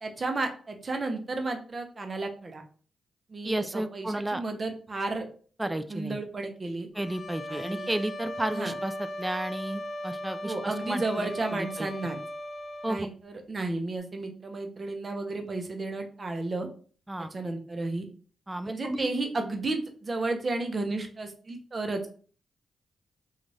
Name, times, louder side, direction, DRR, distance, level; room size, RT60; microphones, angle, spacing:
voice 1, 0.0-2.6 3.3-5.3 5.9-6.9 7.5-7.9 8.5-8.7 10.4-12.2 12.9-16.7 17.3-18.1 18.6-22.0, right 2 dB, 45° right, 4 dB, 0.7 m, -33 dB
voice 2, 3.4-4.4 5.6-6.2 6.9-11.9 12.8-13.1 17.1-17.3 18.5-19.1, right 1 dB, 15° right, 10 dB, 0.3 m, -32 dB
sound 1, 7.0-13.0, left 1 dB, 55° left, 0.8 m, -38 dB
2.5 x 2.4 x 3.2 m, 0.42 s
supercardioid pair, 50°, 0 cm